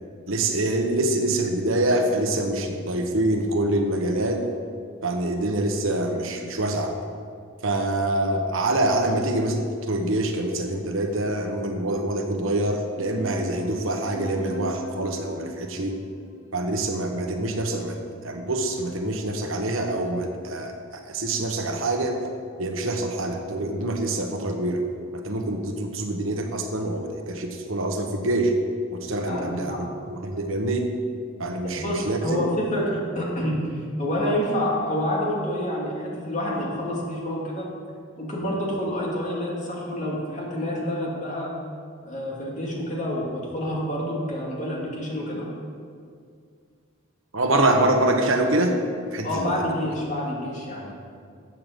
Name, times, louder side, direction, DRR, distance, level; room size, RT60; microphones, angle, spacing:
voice 1, 0.3-4.5 5.0-6.9 7.6-16.0 16.5-22.2 22.6-24.8 25.1-28.5 28.9-30.9 31.4-32.4 47.3-48.8 49.1-49.6, right 1 dB, 70° right, 4 dB, 1.2 m, -25 dB
sound 1, 12.9-17.9, equal, 65° left, 1.0 m, -41 dB
voice 2, 29.3-29.8 31.8-33.6 34.0-37.7 38.2-41.5 42.0-45.5 49.2-50.9, equal, 35° left, -4 dB, 2.4 m, -28 dB
13.5 x 7.7 x 5.3 m, 2.2 s
head